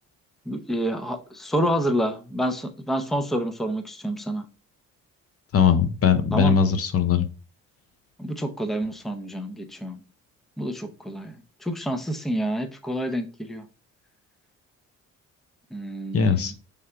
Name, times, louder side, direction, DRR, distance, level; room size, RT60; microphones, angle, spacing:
voice 1, 0.5-4.5 6.3-6.6 8.2-10.0 10.6-13.7 15.7-16.5, equal, ahead, 7 dB, 0.6 m, -28 dB
voice 2, 5.5-7.3 16.1-16.5, left 7 dB, 50° left, 9 dB, 0.6 m, -20 dB
3.5 x 3.3 x 4.4 m, 0.34 s
cardioid pair, 90°, 30 cm